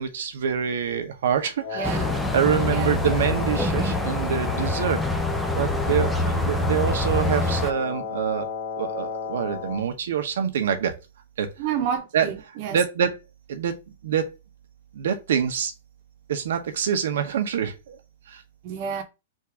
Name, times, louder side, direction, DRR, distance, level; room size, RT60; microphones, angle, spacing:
voice 1, 0.0-5.0 5.6-8.5 8.8-10.9 11.4-11.7 12.1-12.3 12.7-13.2 13.5-14.3 14.9-15.7 16.3-18.0 18.3-18.4, right 8 dB, 75° right, 0.9 m, -26 dB
Wind instrument woodwind instrument, 1.6-9.9, left 6 dB, 35° left, 0.9 m, -34 dB
sound 1, 1.8-7.7, left 2 dB, ahead, 0.5 m, -25 dB
voice 2, 2.7-3.0 6.2-6.5 11.6-12.8 18.6-19.0, right 8 dB, 40° right, 0.9 m, -30 dB
3.7 x 2.6 x 4.5 m
hypercardioid pair, 160°, 0 cm